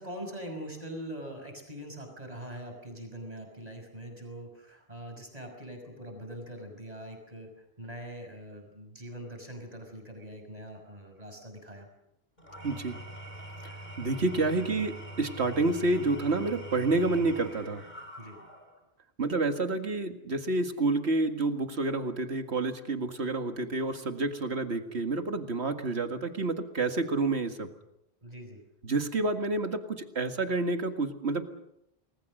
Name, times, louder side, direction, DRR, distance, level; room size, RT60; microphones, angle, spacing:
voice 1, 0.0-7.5 7.8-11.9 18.2-18.4 28.2-28.6, right 1 dB, 40° right, 3 dB, 6.2 m, -43 dB
Engine / Tools, 12.4-18.8, right 1 dB, 45° left, 5.3 m, -44 dB
voice 2, 12.6-13.0 13.6-17.8 19.2-27.7 28.8-31.4, right 2 dB, 85° right, 6 dB, 2.2 m, -29 dB
29.0 x 20.5 x 6.5 m, 0.81 s
omnidirectional pair, 1.1 m